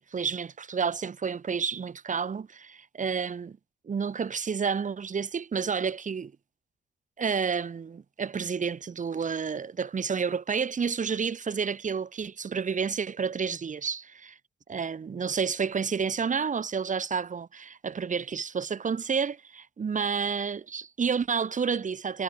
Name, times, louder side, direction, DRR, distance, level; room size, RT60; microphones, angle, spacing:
voice 1, 0.1-3.6 3.8-6.3 7.2-14.4 14.7-22.2, right 6 dB, 40° right, 2.5 m, -30 dB
cardioid pair, 90°, 20 cm